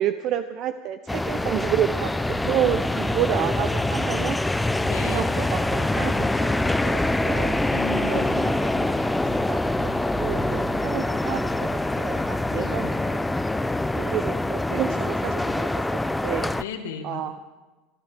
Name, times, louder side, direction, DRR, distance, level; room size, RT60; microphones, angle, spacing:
voice 1, 0.0-4.4 5.0-7.6 8.0-9.2 9.5-11.7 12.0-13.2 14.0-16.6 17.0-17.4, right 11 dB, 50° right, 10 dB, 0.6 m, -30 dB
sound 1, 1.1-16.6, left 2 dB, 5° left, 0.4 m, -25 dB
sound 2, 1.3-14.2, right 5 dB, 20° right, 5.6 m, -41 dB
voice 2, 4.8-5.2 7.7-8.3 12.5-12.9 16.6-17.4, left 5 dB, 85° left, 5 dB, 1.8 m, -35 dB
sound 3, 6.3-13.8, left 7 dB, 35° left, 1.4 m, -43 dB
28.0 x 11.5 x 3.4 m, 1.2 s
supercardioid pair, 110°, 0 cm